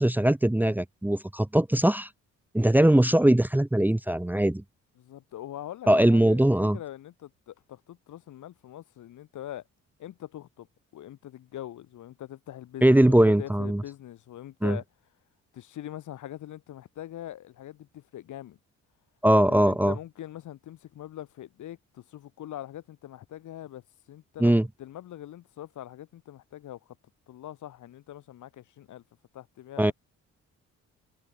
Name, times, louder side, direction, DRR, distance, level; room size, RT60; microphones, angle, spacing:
voice 1, 0.0-2.1 2.5-4.6 5.9-6.8 12.8-13.8 14.6-14.8 19.2-19.9 24.4-24.7 29.8-29.9, right 1 dB, 5° right, 1.0 m, -21 dB
voice 2, 5.0-9.6 10.0-10.7 10.9-14.8 15.5-18.6 19.5-23.8 24.1-24.5 24.8-27.0 27.3-29.0 29.3-29.9, left 12 dB, 75° left, 7.2 m, -42 dB
cardioid pair, 90°, 30 cm